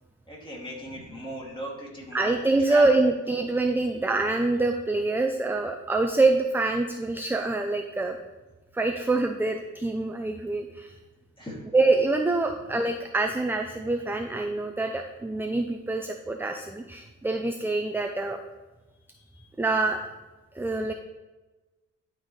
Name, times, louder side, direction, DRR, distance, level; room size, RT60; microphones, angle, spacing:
voice 1, 0.3-2.3 2.7-2.8 11.4-11.6, right 1 dB, 15° left, -4 dB, 2.4 m, -37 dB
voice 2, 2.1-8.2 8.7-10.9 11.7-18.4 19.6-20.0 20.5-20.9, right 2 dB, 5° right, 4 dB, 0.4 m, -25 dB
11.0 x 4.0 x 3.2 m, 1.2 s
cardioid pair, 90°, 30 cm